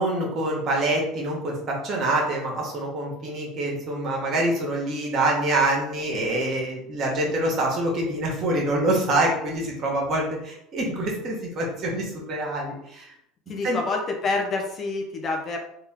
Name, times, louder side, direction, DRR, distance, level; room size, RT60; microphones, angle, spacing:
voice 1, 0.0-13.1 13.6-13.8, right 1 dB, 40° right, -1 dB, 1.5 m, -25 dB
voice 2, 13.5-15.6, left 3 dB, 35° left, 2 dB, 0.8 m, -27 dB
3.5 x 2.7 x 3.7 m, 0.76 s
supercardioid pair, 100°, 0 cm